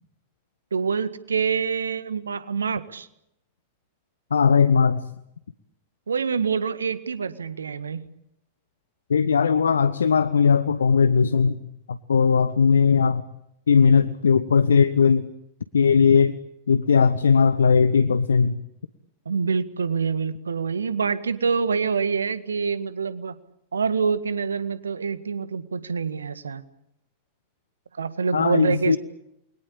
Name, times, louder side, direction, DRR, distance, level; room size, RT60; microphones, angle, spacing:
voice 1, 0.7-3.1 6.1-8.0 19.3-23.3 23.7-26.6 28.0-29.0, right 5 dB, 75° right, 13 dB, 1.8 m, -26 dB
voice 2, 4.3-5.0 9.1-11.6 11.9-13.2 13.7-15.3 15.7-16.4 16.7-18.6 28.3-29.0, left 6 dB, 70° left, 13 dB, 1.1 m, -18 dB
28.5 x 23.0 x 8.6 m, 0.80 s
figure-of-eight pair, 90°, 0 cm